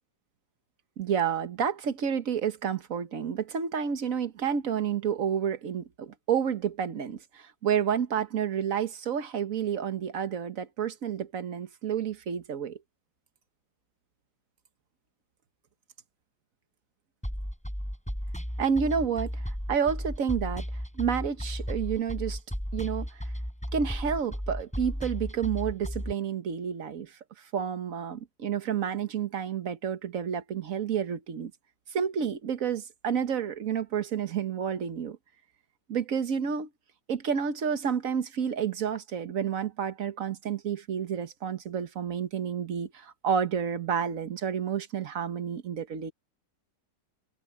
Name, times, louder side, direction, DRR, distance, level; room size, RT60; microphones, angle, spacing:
voice 1, 1.0-12.8 18.6-20.6 20.9-22.4 22.7-23.1 23.7-27.1 27.5-31.5 31.9-35.2 35.9-36.7 37.1-46.1, right 7 dB, 55° right, 1.5 m, -30 dB
sound 1, 17.2-26.1, equal, 5° left, 5.1 m, -34 dB
omnidirectional pair, 1.8 m